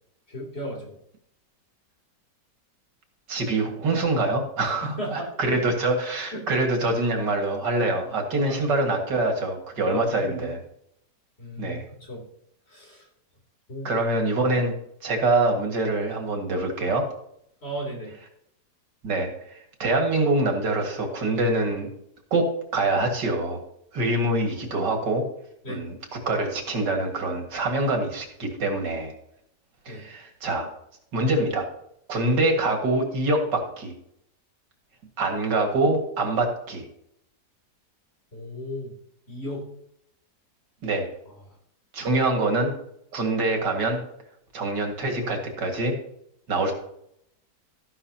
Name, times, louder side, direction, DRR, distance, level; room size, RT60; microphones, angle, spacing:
voice 1, 0.3-1.0 4.6-5.7 6.3-6.4 8.4-8.6 9.8-10.5 11.4-12.2 12.7-13.1 13.7-14.0 17.6-18.1 25.6-25.8 29.9-30.1 38.3-38.9 39.3-39.7, equal, 35° left, -2 dB, 3.6 m, -35 dB
voice 2, 3.3-10.6 11.6-11.8 13.8-14.7 15.0-17.1 19.0-21.9 22.3-23.6 23.9-25.3 25.7-29.1 29.9-30.7 31.1-31.7 32.1-33.9 35.2-36.9 40.8-41.1 41.9-42.7 43.1-44.0 44.5-46.0 46.5-46.7, right 2 dB, 85° right, 3 dB, 2.5 m, -25 dB
13.5 x 11.0 x 2.9 m, 0.74 s
omnidirectional pair, 1.8 m